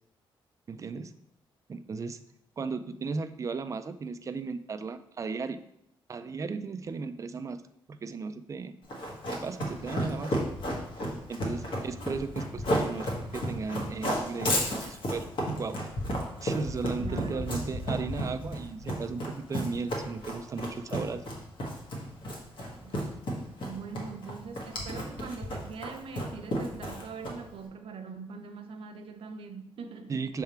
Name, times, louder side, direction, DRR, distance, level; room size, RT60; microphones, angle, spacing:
voice 1, 0.7-1.1 1.7-2.2 2.6-5.6 6.1-7.6 7.9-8.7 9.3-10.4 11.3-13.1 13.3-15.3 15.6-15.8 16.4-21.2 30.1-30.4, right 4 dB, 35° right, 0.4 m, -35 dB
Run, 8.9-27.6, equal, 60° left, 1.5 m, -32 dB
voice 2, 17.0-17.5 22.8-23.2 23.7-30.3, right 5 dB, 70° right, 0.7 m, -42 dB
6.5 x 3.6 x 4.3 m
wide cardioid pair, 145°, 10 cm